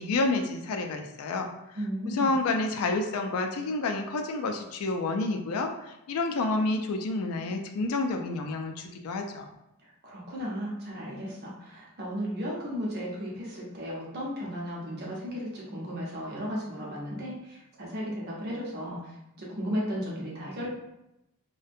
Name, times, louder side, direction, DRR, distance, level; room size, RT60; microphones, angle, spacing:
voice 1, 0.0-1.5 2.1-9.5, left 3 dB, 75° left, 4 dB, 0.3 m, -29 dB
voice 2, 1.7-2.4 9.8-20.7, equal, 45° right, -4 dB, 0.7 m, -35 dB
2.5 x 2.1 x 2.5 m, 0.88 s
head